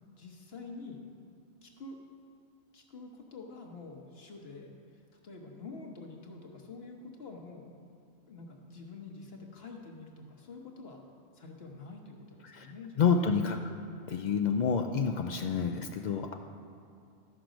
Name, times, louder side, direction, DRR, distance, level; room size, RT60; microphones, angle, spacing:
voice 1, 0.2-1.0 1.6-2.0 2.7-4.7 5.2-7.7 8.3-11.0 11.3-13.0, left 3 dB, 50° left, 1 dB, 1.3 m, -47 dB
voice 2, 13.0-13.7 14.1-16.3, left 6 dB, 85° left, 5 dB, 0.4 m, -28 dB
14.0 x 6.0 x 5.1 m, 2.4 s
omnidirectional pair, 1.3 m